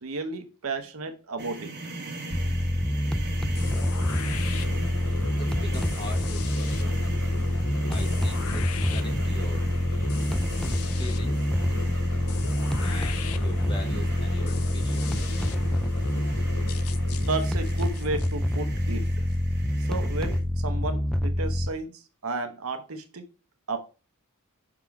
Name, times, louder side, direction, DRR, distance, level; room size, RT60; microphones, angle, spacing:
voice 1, 0.0-1.7 17.1-19.1 19.9-21.9 22.2-23.2 23.7-23.8, right 3 dB, 70° right, 0.9 m, -33 dB
sound 1, 1.4-20.4, right 2 dB, 50° right, 1.3 m, -41 dB
sound 2, 2.3-21.7, equal, 5° left, 0.3 m, -26 dB
sound 3, 3.5-19.4, left 6 dB, 70° left, 0.6 m, -38 dB
voice 2, 5.4-7.0 7.9-9.7 11.0-11.5 12.8-15.4, equal, 20° left, 1.2 m, -42 dB
5.9 x 3.7 x 4.7 m
head